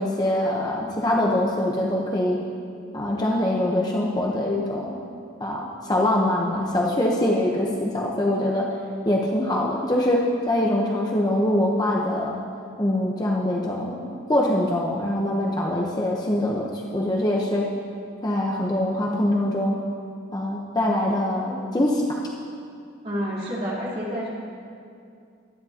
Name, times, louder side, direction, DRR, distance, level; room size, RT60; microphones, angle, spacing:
voice 1, 0.0-2.4 2.9-5.0 5.4-8.6 9.0-10.2 10.5-12.3 12.8-17.6 18.2-19.8 20.3-22.2, left 1 dB, 20° left, -2 dB, 0.9 m, -23 dB
voice 2, 23.0-24.3, equal, 30° right, -7 dB, 3.4 m, -28 dB
18.0 x 12.5 x 2.9 m, 2.4 s
head